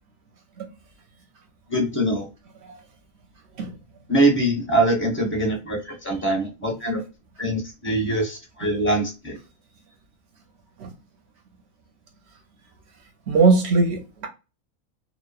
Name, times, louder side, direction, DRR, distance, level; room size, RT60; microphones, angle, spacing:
voice 1, 1.7-2.3 4.1-7.0 7.4-9.4, right 1 dB, 10° left, 0.6 m, -23 dB
voice 2, 13.3-14.3, right 4 dB, 65° right, 0.7 m, -20 dB
3.0 x 2.0 x 2.3 m
omnidirectional pair, 1.5 m